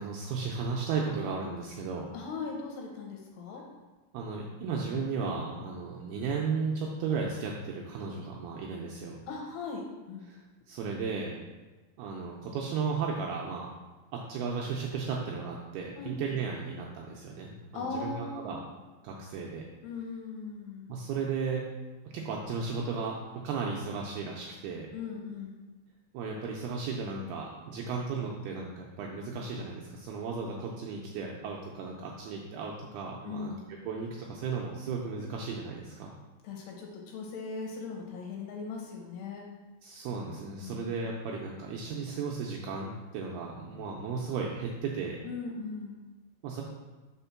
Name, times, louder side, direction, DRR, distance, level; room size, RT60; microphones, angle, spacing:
voice 1, 0.0-2.1 4.1-9.2 10.3-10.4 10.7-11.3 12.0-13.7 14.1-18.6 19.0-19.6 20.9-21.7 22.1-24.9 26.1-33.6 33.9-36.1 39.8-45.2 46.4-46.6, right 5 dB, 90° right, -1 dB, 2.2 m, -35 dB
voice 2, 2.1-3.6 9.3-10.3 16.0-16.1 17.7-18.6 19.8-20.9 24.9-25.6 33.2-33.6 36.4-39.5 40.6-40.9 45.2-46.0, left 4 dB, 75° left, 0 dB, 2.6 m, -39 dB
5.8 x 4.4 x 5.7 m, 1.2 s
omnidirectional pair, 5.2 m